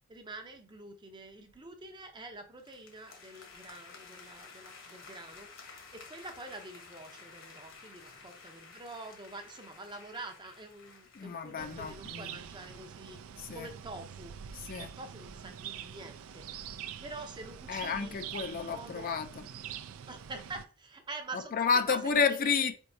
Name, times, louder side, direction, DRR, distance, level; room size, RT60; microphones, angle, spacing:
voice 1, 0.1-13.2 13.5-14.3 14.8-16.5 17.0-18.2 18.4-19.1 20.1-21.5 21.9-22.0 22.3-22.7, right 2 dB, 20° right, 0.6 m, -46 dB
sound 1, 2.6-12.9, left 4 dB, 65° left, 1.2 m, -53 dB
voice 2, 11.2-12.4 13.4-13.7 14.5-14.9 17.7-19.4 21.5-22.7, left 5 dB, 40° left, 0.4 m, -31 dB
sound 2, 11.6-20.7, right 8 dB, 75° right, 0.4 m, -45 dB
4.5 x 4.4 x 2.6 m
head